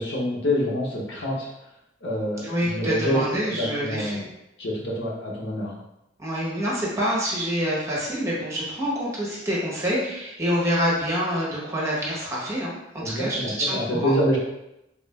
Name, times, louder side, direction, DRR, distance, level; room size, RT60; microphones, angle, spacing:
voice 1, 0.0-1.5 2.0-2.5 2.7-3.2 3.6-4.2 4.6-5.7 13.0-14.4, equal, 85° left, -4 dB, 0.9 m, -26 dB
voice 2, 2.4-4.2 6.2-12.8 13.0-14.1, equal, 15° right, -6 dB, 0.9 m, -26 dB
3.5 x 2.5 x 3.3 m, 0.88 s
head